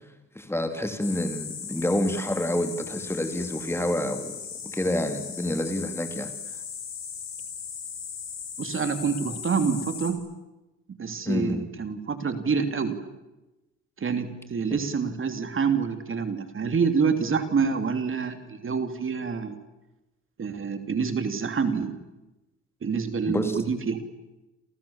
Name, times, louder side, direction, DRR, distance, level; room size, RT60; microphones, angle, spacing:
voice 1, 0.3-6.3 11.2-11.7 14.7-14.9 23.3-23.6, left 1 dB, 10° left, 7 dB, 3.2 m, -28 dB
sound 1, 1.0-10.1, left 7 dB, 60° left, 7.7 m, -38 dB
voice 2, 8.6-10.2 10.9-13.0 14.0-19.5 20.4-21.9 22.8-24.0, right 5 dB, 45° right, 8 dB, 3.1 m, -27 dB
29.0 x 27.5 x 7.3 m, 1.0 s
cardioid pair, 90°, 30 cm